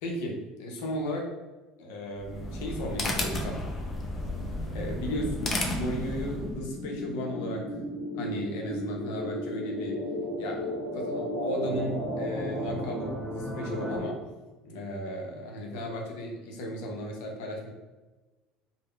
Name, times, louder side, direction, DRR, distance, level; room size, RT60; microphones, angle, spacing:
voice 1, 0.0-1.3 1.8-3.6 4.7-7.6 8.1-10.0 10.4-14.2 14.6-17.7, equal, 75° left, 1 dB, 0.6 m, -35 dB
sound 1, 2.2-6.6, left 1 dB, 30° left, 0.5 m, -33 dB
sound 2, 4.8-14.0, equal, 15° right, 0.6 m, -35 dB
3.5 x 2.0 x 2.3 m, 1.2 s
supercardioid pair, 90°, 0 cm